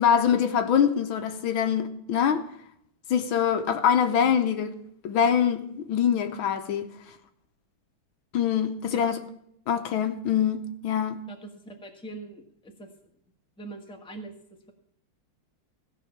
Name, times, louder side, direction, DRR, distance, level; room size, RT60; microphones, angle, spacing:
voice 1, 0.0-2.5 3.1-4.7 5.0-5.6 5.9-6.9 8.3-9.2 9.7-11.2, left 8 dB, 75° left, 1.6 m, -24 dB
voice 2, 11.3-12.9 13.6-14.7, right 2 dB, 5° left, 1.2 m, -42 dB
16.5 x 5.6 x 8.4 m
omnidirectional pair, 2.3 m